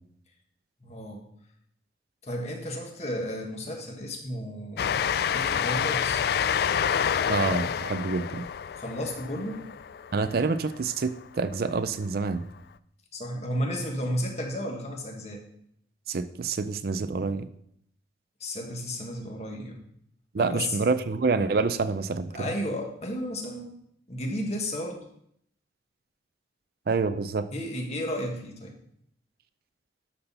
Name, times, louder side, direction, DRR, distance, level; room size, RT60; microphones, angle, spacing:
voice 1, 0.8-1.2 2.2-6.2 8.8-9.7 13.1-15.4 18.4-19.8 20.4-20.8 22.3-23.7 24.1-25.0 27.5-28.7, equal, 35° left, 1 dB, 1.6 m, -33 dB
Train, 4.8-10.9, left 8 dB, 60° left, 0.3 m, -28 dB
voice 2, 7.3-8.4 10.1-12.4 16.1-17.5 20.3-22.3 26.9-27.5, right 4 dB, 55° right, 12 dB, 0.4 m, -27 dB
12.0 x 4.2 x 5.6 m, 0.71 s
head